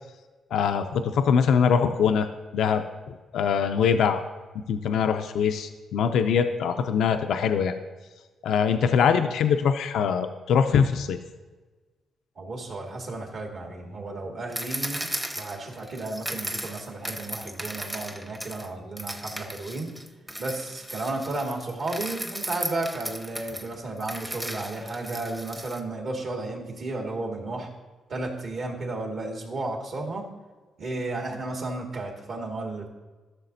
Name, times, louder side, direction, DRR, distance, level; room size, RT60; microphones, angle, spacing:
voice 1, 0.5-2.3 2.5-2.8 3.3-4.2 4.5-7.8 8.4-11.2, left 7 dB, 80° left, 7 dB, 0.4 m, -23 dB
voice 2, 12.4-15.1 15.4-19.9 20.4-27.7 28.1-30.3 30.8-32.9, right 2 dB, 60° right, 0 dB, 1.9 m, -33 dB
sound 1, 14.5-18.7 19.0-25.8, right 1 dB, 10° right, 0.7 m, -36 dB
13.0 x 6.5 x 2.6 m, 1.3 s
cardioid pair, 85°, 0 cm